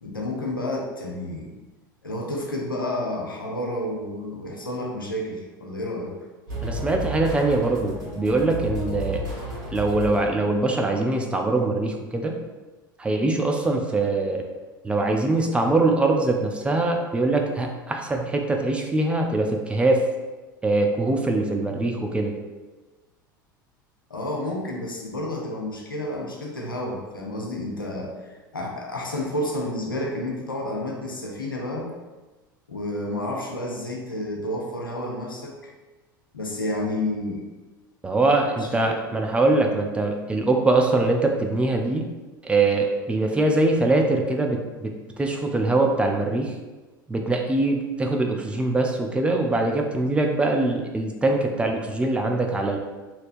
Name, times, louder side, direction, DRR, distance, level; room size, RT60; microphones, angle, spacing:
voice 1, 0.0-1.5 2.0-6.1 24.1-31.9 32.7-35.7 36.3-37.4 38.6-39.0, left 1 dB, 80° left, -1 dB, 0.6 m, -30 dB
sound 1, 6.5-10.6, equal, 65° right, 1.2 m, -32 dB
voice 2, 6.6-9.2 9.7-12.4 13.0-14.4 14.8-20.0 20.6-22.3 38.0-42.1 42.4-46.5 47.1-52.8, right 2 dB, 10° right, 2 dB, 0.3 m, -23 dB
3.2 x 2.8 x 2.5 m, 1.2 s
figure-of-eight pair, 75°, 11 cm